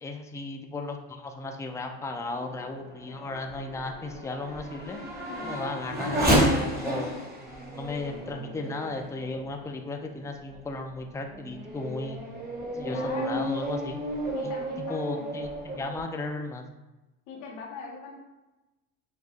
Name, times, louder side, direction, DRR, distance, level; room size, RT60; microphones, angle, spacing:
voice 1, 0.0-5.0 5.4-7.1 7.5-12.2 12.7-14.0 14.4-14.5 14.9-16.7, left 2 dB, 10° left, 4 dB, 0.3 m, -35 dB
Race car auto racing / Accelerating revving vroom, 2.0-9.9 10.5-10.6 11.2-16.0, right 1 dB, 25° right, 1.4 m, -31 dB
voice 2, 12.8-13.5 14.3-15.4 17.3-18.1, left 4 dB, 80° left, -2 dB, 1.2 m, -41 dB
6.0 x 2.6 x 2.5 m, 1.0 s
supercardioid pair, 85°, 40 cm